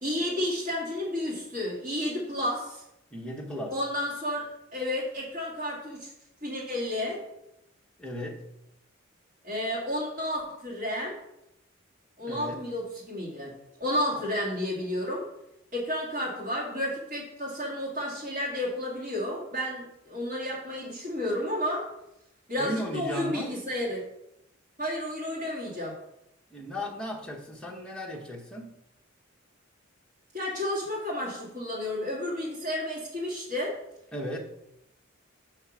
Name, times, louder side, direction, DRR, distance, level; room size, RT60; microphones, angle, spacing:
voice 1, 0.0-2.8 3.7-6.1 6.4-7.2 9.4-11.2 12.2-15.3 15.7-21.9 22.5-24.0 24.8-26.0 30.3-33.8, left 1 dB, 40° right, -5 dB, 1.9 m, -31 dB
voice 2, 3.1-3.8 8.0-8.5 12.3-12.6 14.1-14.2 22.6-23.6 26.5-28.7 34.1-34.4, equal, 5° left, -2 dB, 1.0 m, -36 dB
5.7 x 4.7 x 6.1 m, 0.83 s
head